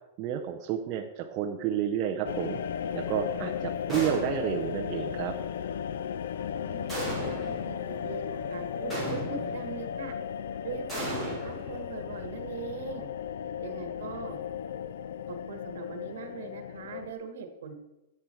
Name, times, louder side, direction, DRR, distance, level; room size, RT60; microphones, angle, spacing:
voice 1, 0.2-5.3, right 9 dB, 25° right, 2 dB, 0.6 m, -31 dB
sound 1, 2.2-17.1, left 8 dB, 70° left, 0.4 m, -35 dB
sound 2, 3.9-4.6 6.9-7.7 8.9-9.7 10.9-12.1, right 1 dB, 5° left, 2.5 m, -36 dB
voice 2, 6.6-10.1 10.6-13.1 13.6-14.4 15.3-17.7, right 5 dB, 65° right, 7 dB, 1.6 m, -41 dB
10.5 x 7.8 x 4.5 m, 0.97 s
supercardioid pair, 175°, 0 cm